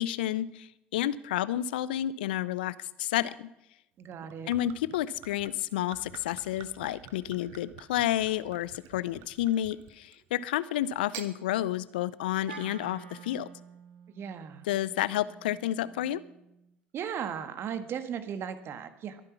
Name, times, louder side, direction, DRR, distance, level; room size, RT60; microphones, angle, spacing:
voice 1, 0.0-3.5 4.5-13.5 14.7-16.2, left 13 dB, 75° left, 18 dB, 0.6 m, -30 dB
voice 2, 4.0-4.5 14.1-14.7 16.9-19.2, right 8 dB, 50° right, 11 dB, 1.6 m, -37 dB
Gurgling / Chink clink / Liquid, 4.1-10.3 10.9-11.3, right 10 dB, 65° right, 1.3 m, -48 dB
Wind instrument woodwind instrument, 12.5-16.7, right 6 dB, 85° right, 1.4 m, -50 dB
22.5 x 9.7 x 5.9 m, 0.87 s
hypercardioid pair, 65°, 5 cm